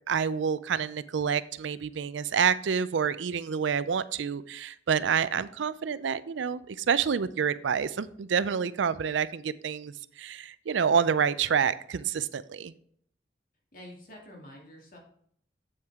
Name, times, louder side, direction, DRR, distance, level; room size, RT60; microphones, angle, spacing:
voice 1, 0.1-12.7, right 7 dB, 80° right, 16 dB, 0.4 m, -28 dB
voice 2, 13.7-15.0, left 1 dB, 45° left, -1 dB, 2.5 m, -47 dB
7.9 x 7.4 x 3.6 m, 0.64 s
head